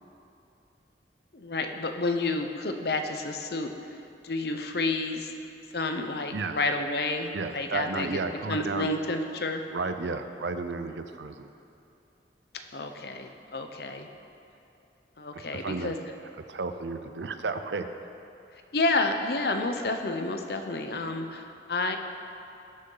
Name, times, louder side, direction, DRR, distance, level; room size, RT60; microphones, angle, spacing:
voice 1, 1.3-4.0 4.2-5.3 5.7-8.2 8.5-9.6 12.7-14.1 15.2-16.0 18.7-22.0, left 2 dB, 60° left, 5 dB, 0.8 m, -30 dB
voice 2, 7.3-8.9 9.7-11.5 15.3-15.9 16.5-17.8, right 3 dB, 85° right, 9 dB, 0.6 m, -33 dB
19.0 x 6.4 x 4.0 m, 2.7 s
head